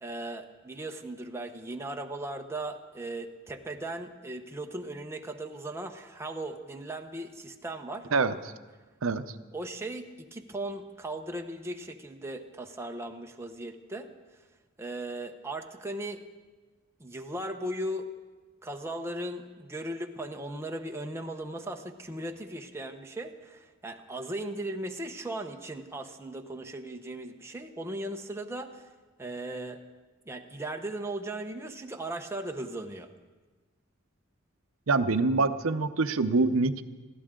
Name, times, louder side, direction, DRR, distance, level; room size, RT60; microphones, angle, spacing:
voice 1, 0.0-8.1 9.1-9.2 9.5-14.1 14.8-16.2 17.0-18.1 18.6-28.9 29.2-29.8 30.3-33.1, right 1 dB, 10° right, 3 dB, 0.8 m, -37 dB
voice 2, 34.9-36.8, right 3 dB, 70° right, 10 dB, 0.7 m, -25 dB
21.0 x 15.0 x 3.7 m, 1.3 s
head